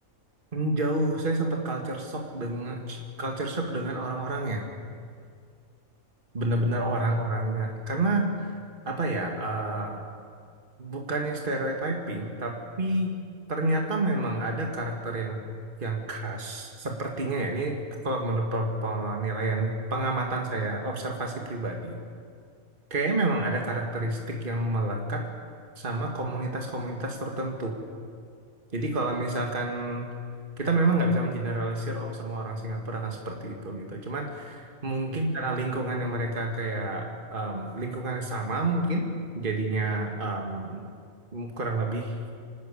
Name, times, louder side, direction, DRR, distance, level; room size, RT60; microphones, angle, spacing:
voice 1, 0.5-4.7 6.3-8.5 8.9-10.0 10.8-13.1 13.5-15.4 15.8-17.8 18.0-22.0 22.9-25.2 25.8-27.8 28.7-30.1 30.6-39.1 39.3-40.8 41.3-42.2, right 2 dB, 40° right, 1 dB, 2.2 m, -29 dB
26.0 x 13.0 x 8.5 m, 2.2 s
omnidirectional pair, 1.4 m